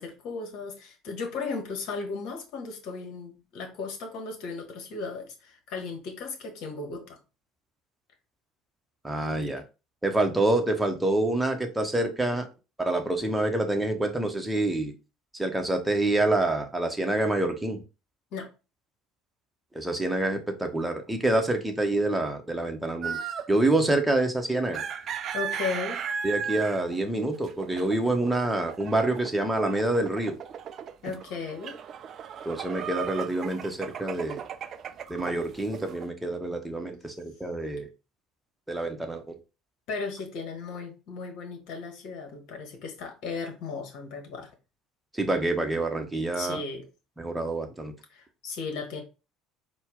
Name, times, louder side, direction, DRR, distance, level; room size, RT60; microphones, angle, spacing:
voice 1, 0.0-7.2 18.3-18.5 25.3-26.0 31.0-31.8 39.9-44.5 46.3-46.9 48.1-49.0, left 4 dB, 60° left, 1.2 m, -36 dB
voice 2, 9.0-9.6 10.0-12.5 12.8-14.9 15.3-17.8 19.7-23.2 23.5-24.8 26.2-30.4 32.4-34.4 35.1-37.9 38.7-39.4 45.1-46.6 47.2-47.9, right 2 dB, 10° right, 0.9 m, -27 dB
sound 1, 23.0-23.6 24.6-36.1, right 7 dB, 45° right, 0.4 m, -36 dB
4.3 x 2.2 x 3.6 m
hypercardioid pair, 65°, 0 cm